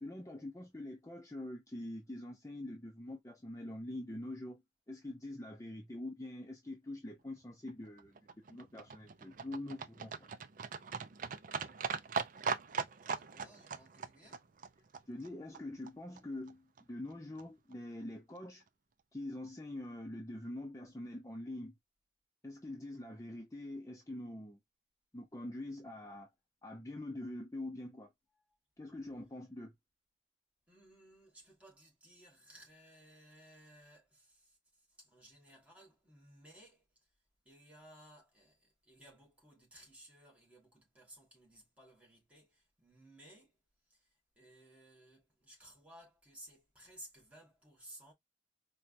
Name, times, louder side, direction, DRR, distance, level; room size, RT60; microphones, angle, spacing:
voice 1, 0.0-4.6 4.9-8.2 8.5-10.3 15.1-18.6 19.1-21.7 22.4-24.6 25.1-26.3 26.6-28.1 28.8-29.7, left 1 dB, 20° left, 0.6 m, -44 dB
Livestock farm animals working animals, 7.7-15.9 16.2-16.3 16.5-16.6 16.8-16.9 17.1-17.2 17.4-17.5 17.7-17.8 18.0-18.1 18.4-18.5, right 5 dB, 50° right, 0.4 m, -40 dB
voice 2, 13.1-14.5 28.5-28.6 30.7-37.1 37.4-43.6 43.9-48.1, right 1 dB, 10° right, 1.3 m, -59 dB
4.4 x 2.3 x 2.5 m
head